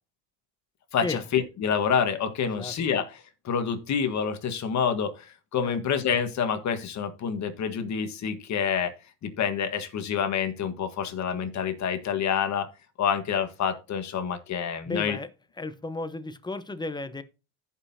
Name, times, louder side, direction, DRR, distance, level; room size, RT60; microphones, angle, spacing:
voice 1, 0.9-3.2 3.5-8.9 9.2-12.7 13.0-15.2, left 7 dB, 45° left, 1.7 m, -27 dB
voice 2, 14.8-15.3 15.6-17.2, left 2 dB, 10° left, 1.0 m, -34 dB
15.0 x 5.8 x 2.8 m
supercardioid pair, 85°, 37 cm